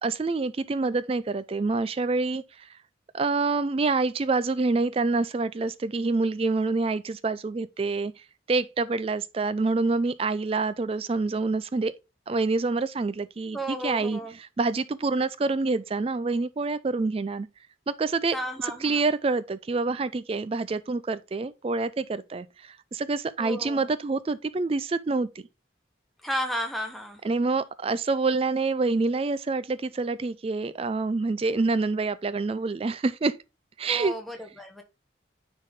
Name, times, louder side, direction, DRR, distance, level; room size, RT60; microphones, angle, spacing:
voice 1, 0.0-2.7 3.1-8.1 8.5-11.9 12.3-17.5 17.9-18.4 18.6-25.3 27.2-33.4 33.8-34.1, right 3 dB, 30° right, 0.3 m, -27 dB
voice 2, 13.5-14.4 18.3-19.0 23.4-23.9 26.2-27.2 33.9-34.8, equal, ahead, 1.2 m, -33 dB
9.7 x 4.1 x 3.6 m
head